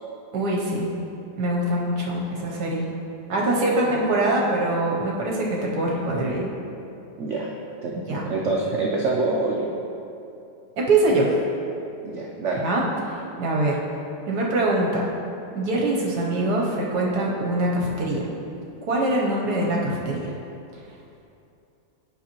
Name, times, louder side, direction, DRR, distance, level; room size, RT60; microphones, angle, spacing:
voice 1, 0.3-0.9 1.4-2.9 3.3-6.5 8.1-8.3 10.8-11.3 12.6-13.8 14.3-15.1 15.5-18.3 18.9-20.3, right 2 dB, 65° right, -2 dB, 1.2 m, -23 dB
voice 2, 7.2-7.5 7.8-9.7 12.0-12.6, right 3 dB, 90° right, -2 dB, 0.6 m, -26 dB
8.8 x 5.6 x 2.9 m, 2.7 s
omnidirectional pair, 2.0 m